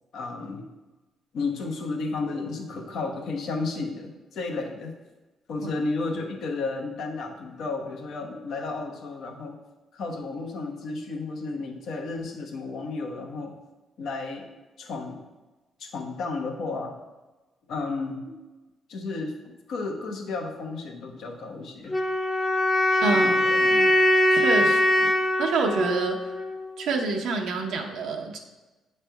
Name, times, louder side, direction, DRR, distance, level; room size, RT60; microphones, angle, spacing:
voice 1, 0.1-0.7 1.3-4.9 5.5-9.6 9.9-13.5 14.0-14.5 14.8-15.2 15.8-16.9 17.7-18.3 18.9-22.0 23.1-24.0, left 3 dB, 70° left, 3 dB, 0.9 m, -33 dB
sound 1, 21.9-26.9, left 1 dB, 25° left, 0.6 m, -22 dB
voice 2, 23.0-23.4 24.3-25.1 25.4-26.2 26.8-28.4, right 4 dB, 80° right, 1 dB, 0.7 m, -27 dB
7.9 x 3.3 x 4.5 m, 1.2 s
cardioid pair, 90°, 0 cm